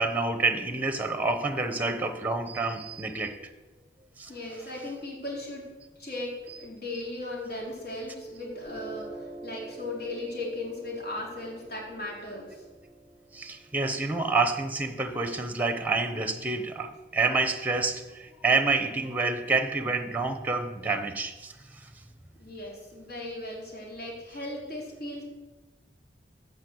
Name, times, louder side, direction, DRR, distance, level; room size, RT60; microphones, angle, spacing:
voice 1, 0.0-3.5 4.2-4.3 13.3-21.5 21.8-21.9, right 3 dB, 10° right, 8 dB, 0.9 m, -28 dB
voice 2, 4.3-5.7 6.0-12.6 22.4-25.2, left 2 dB, 60° left, -3 dB, 3.8 m, -37 dB
Piano, 7.6-14.7, right 1 dB, 40° left, 2.4 m, -46 dB
13.0 x 5.4 x 8.0 m, 1.2 s
head